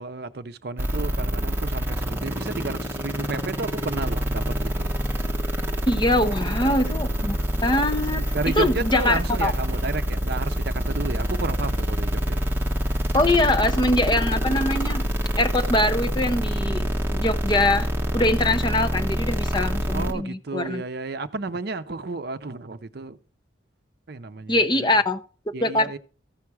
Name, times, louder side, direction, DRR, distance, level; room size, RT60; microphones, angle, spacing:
voice 1, 0.0-5.0 8.3-12.4 19.9-23.2 24.1-24.6 25.5-26.0, right 3 dB, 55° right, 0.6 m, -32 dB
sound 1, 0.8-20.1, equal, 10° right, 1.3 m, -26 dB
voice 2, 5.9-9.5 13.1-15.0 15.4-17.9 18.1-20.8 24.5-25.2 25.6-26.0, left 1 dB, 20° left, 0.7 m, -23 dB
14.5 x 5.8 x 4.7 m
head